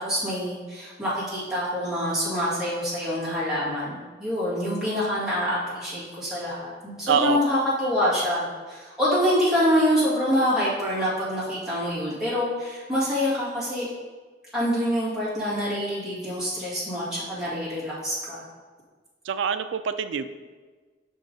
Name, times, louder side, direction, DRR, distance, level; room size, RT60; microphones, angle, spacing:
voice 1, 0.0-3.9 4.2-13.9 14.5-18.4, equal, 5° right, -10 dB, 2.1 m, -26 dB
voice 2, 7.1-7.4 19.3-20.3, right 6 dB, 80° right, 10 dB, 0.4 m, -24 dB
5.8 x 3.8 x 5.3 m, 1.4 s
head